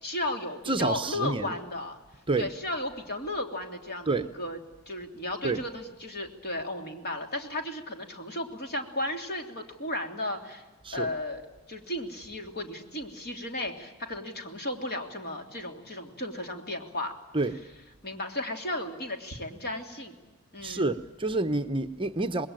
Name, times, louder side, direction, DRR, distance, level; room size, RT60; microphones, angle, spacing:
voice 1, 0.0-2.0 2.4-4.6 4.9-10.6 10.9-17.2 18.0-20.2 20.5-20.9, left 1 dB, 45° left, 4 dB, 3.2 m, -34 dB
voice 2, 0.7-1.6 2.3-2.5 4.1-4.3 5.4-5.6 10.8-11.1 17.3-17.6 20.6-22.5, right 2 dB, 25° right, 8 dB, 0.8 m, -28 dB
26.5 x 21.0 x 9.0 m, 1.1 s
head